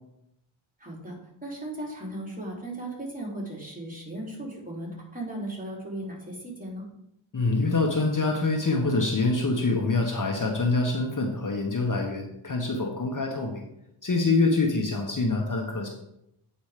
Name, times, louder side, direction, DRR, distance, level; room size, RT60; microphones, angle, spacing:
voice 1, 0.8-1.2 1.4-6.9, right 1 dB, 15° right, -3 dB, 3.5 m, -36 dB
voice 2, 7.3-13.6 14.0-15.9, left 3 dB, 40° left, 1 dB, 1.4 m, -25 dB
8.7 x 5.1 x 5.1 m, 0.80 s
cardioid pair, 70°, 49 cm